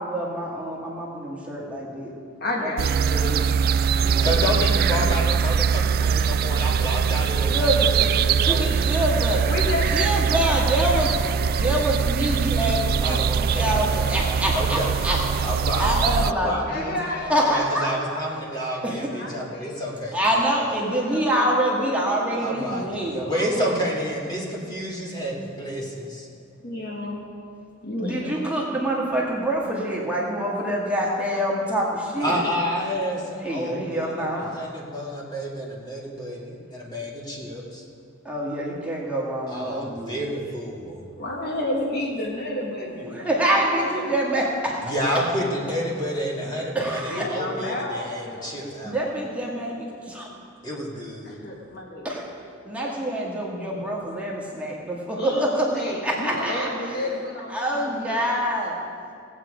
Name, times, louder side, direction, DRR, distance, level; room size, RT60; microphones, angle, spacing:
voice 1, 0.0-2.1 2.6-3.4 4.0-4.3 7.3-9.5 9.8-11.1 11.5-17.9 18.8-19.1 20.1-23.3 28.0-32.4 33.4-34.5 38.2-40.2 43.0-45.3 46.8-47.3 48.8-50.3 52.0-52.2 52.7-57.2 57.5-58.7, right 1 dB, 5° right, -4 dB, 1.8 m, -26 dB
voice 2, 2.4-3.5 3.9-5.2 9.5-10.2 11.4-11.6 16.7-17.5 18.1-18.8 19.2-19.9 21.0-23.0 23.2-23.8 26.6-27.2 27.8-28.4 41.2-43.3 43.6-44.1 47.1-48.6 51.2-52.1 55.2-57.7 58.1-58.2, left 1 dB, 50° left, -1 dB, 1.4 m, -32 dB
sound 1, 2.8-16.3, right 7 dB, 45° right, 0.3 m, -22 dB
voice 3, 4.2-8.7 13.0-14.0 14.5-14.9 15.4-15.9 16.2-16.7 17.3-20.2 22.4-22.9 23.3-26.3 32.2-37.8 39.5-41.1 44.8-47.0 47.3-48.9 50.6-51.4, equal, 20° left, -3 dB, 2.1 m, -29 dB
17.0 x 8.4 x 5.0 m, 2.3 s
head